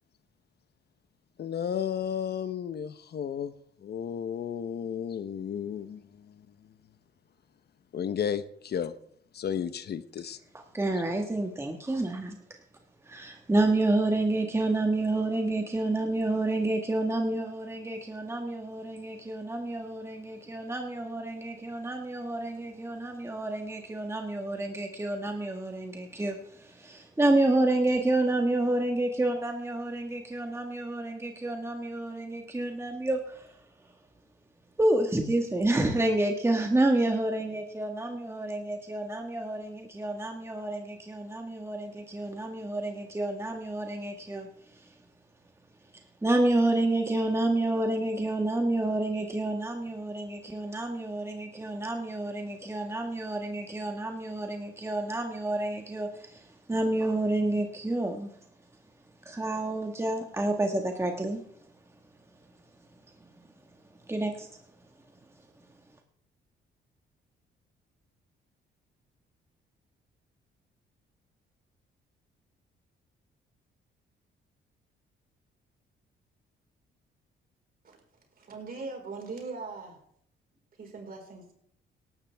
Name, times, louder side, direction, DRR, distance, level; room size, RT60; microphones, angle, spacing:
voice 1, 1.4-3.5 3.8-6.5 7.9-8.9 9.3-10.4, left 8 dB, 55° left, 0.9 m, -33 dB
voice 2, 10.7-12.4 13.0-33.5 34.8-44.5 44.7-44.8 46.2-58.3 59.2-61.4 64.1-64.5, right 2 dB, 15° right, 1.6 m, -29 dB
voice 3, 78.4-80.0 80.8-81.5, right 4 dB, 50° right, 4.7 m, -40 dB
18.0 x 12.0 x 3.5 m
cardioid pair, 90°, 20 cm